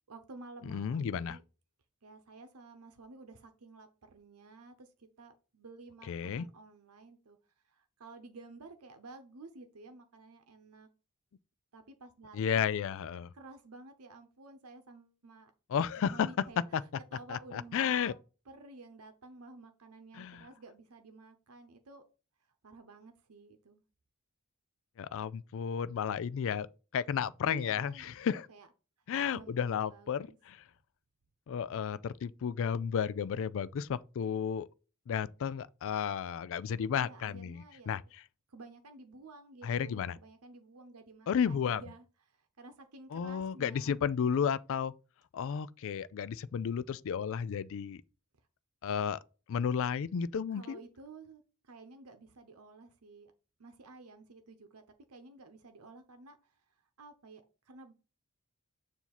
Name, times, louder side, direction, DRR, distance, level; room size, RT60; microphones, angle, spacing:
voice 1, 0.1-1.4 2.0-7.4 7.7-10.9 11.7-12.8 13.3-15.5 16.0-16.6 17.1-18.1 18.5-22.0 22.6-23.8 27.5-28.7 29.2-30.4 36.9-38.0 38.5-44.0 50.5-53.3 53.6-54.8 55.1-56.5 57.0-57.9, right 3 dB, 80° right, 0.8 m, -52 dB
voice 2, 0.7-1.4 6.1-6.5 12.3-13.3 15.7-16.3 16.7-16.8 17.3-18.1 20.1-20.5 25.0-26.7 26.9-28.5 29.1-30.6 31.5-34.7 35.1-38.0 39.6-40.2 41.3-41.8 43.1-44.9 45.3-48.0 48.8-49.2 49.5-50.8, left 7 dB, 60° left, 0.3 m, -33 dB
7.0 x 2.8 x 5.8 m
head